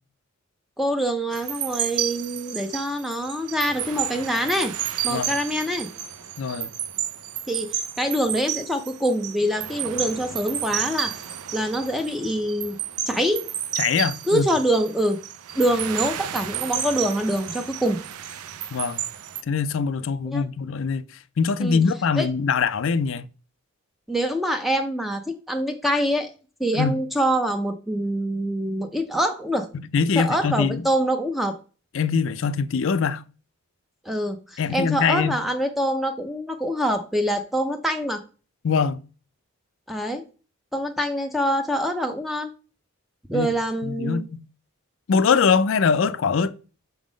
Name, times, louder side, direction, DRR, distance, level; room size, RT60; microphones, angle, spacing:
voice 1, 0.8-4.7 5.0-5.9 7.5-11.2 11.5-12.8 13.1-13.4 14.3-15.2 15.6-18.0 20.3-20.4 21.6-21.8 22.2-22.3 24.1-26.3 26.6-29.7 30.2-31.6 34.0-38.2 39.9-40.2 40.7-42.5 43.3-44.2, equal, ahead, 0.5 m, -25 dB
sound 1, 1.3-19.4, right 10 dB, 85° right, 0.6 m, -32 dB
voice 2, 6.4-6.7 13.8-14.4 18.7-19.0 19.5-21.0 21.4-23.3 26.7-27.0 29.7-30.8 31.9-33.2 34.6-35.4 38.6-39.0 43.3-43.5 43.9-44.5 45.1-46.5, left 5 dB, 60° left, 0.4 m, -23 dB
6.0 x 3.7 x 5.0 m
head